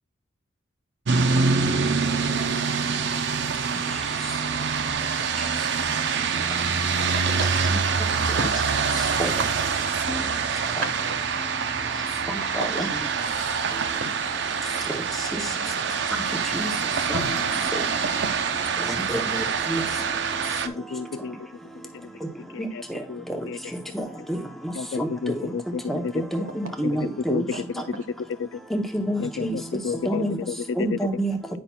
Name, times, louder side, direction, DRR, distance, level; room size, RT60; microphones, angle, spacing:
sound 1, 1.1-20.7, right 5 dB, 55° right, 0.5 m, -25 dB
voice 1, 5.5-7.7 8.4-8.5 9.1-9.2 11.0-11.2 14.0-14.4 27.5-27.6, right 2 dB, 75° right, 1.4 m, -36 dB
voice 2, 12.3-12.9 16.5-16.7 17.1-17.2 19.1-19.4 19.7-19.8 23.9-24.4 24.6-25.1 25.4-25.5 25.9-27.5 28.7-29.5 30.1-30.4 30.8-31.4, right 1 dB, ahead, 0.8 m, -28 dB
Drum, 17.1-19.2, left 4 dB, 85° left, 0.7 m, -40 dB
voice 3, 20.6-21.4 21.9-22.1 22.5-22.8 23.1-23.6 23.9-24.0 24.7-26.1 26.8-27.8 28.4-28.6 29.2-31.0, left 5 dB, 60° left, 0.3 m, -31 dB
9.4 x 5.7 x 2.3 m
head